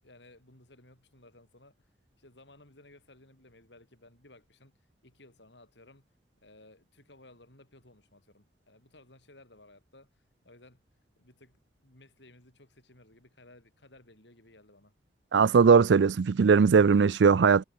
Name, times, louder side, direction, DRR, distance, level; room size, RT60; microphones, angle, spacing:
voice 1, 0.0-1.8 2.2-6.0 6.4-10.8 11.2-15.0, left 2 dB, 85° left, 7.1 m, -57 dB
voice 2, 15.3-17.6, right 5 dB, 85° right, 0.4 m, -20 dB
head